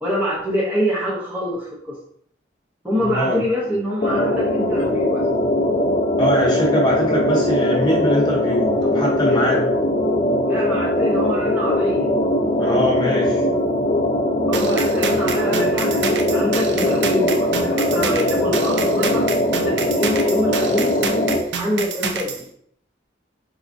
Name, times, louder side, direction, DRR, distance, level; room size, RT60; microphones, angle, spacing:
voice 1, 0.0-1.9 2.8-5.3 10.5-12.1 14.5-19.3 19.5-21.0 21.6-22.4, equal, 10° right, -6 dB, 0.6 m, -25 dB
voice 2, 3.0-3.4 6.2-9.7 12.6-13.4, equal, 25° left, -3 dB, 0.7 m, -22 dB
sound 1, 4.0-21.4, left 1 dB, 45° left, 0.4 m, -20 dB
sound 2, 14.5-22.4, right 5 dB, 70° right, 0.4 m, -28 dB
4.1 x 2.3 x 2.5 m, 0.67 s
head